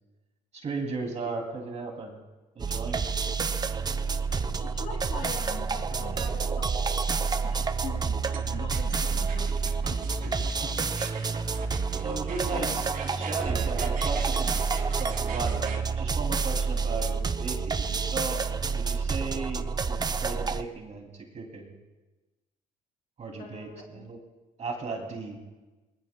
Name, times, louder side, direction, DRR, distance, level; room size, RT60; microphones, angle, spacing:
voice 1, 0.5-2.2 2.6-3.1 10.3-10.4 10.8-10.9 12.0-12.9 13.2-18.4 18.7-21.7 23.2-24.2 24.6-25.4, right 3 dB, 40° right, 1 dB, 2.6 m, -36 dB
sound 1, 2.6-20.6, right 5 dB, 25° right, 0.6 m, -29 dB
voice 2, 4.3-6.9 7.4-9.5 9.9-10.3 12.0-12.8 23.4-24.1, left 5 dB, 60° left, 0 dB, 2.8 m, -43 dB
sound 2, 8.3-15.8, right 6 dB, 55° right, 2.9 m, -42 dB
24.0 x 20.5 x 2.2 m, 1.2 s
cardioid pair, 110°, 17 cm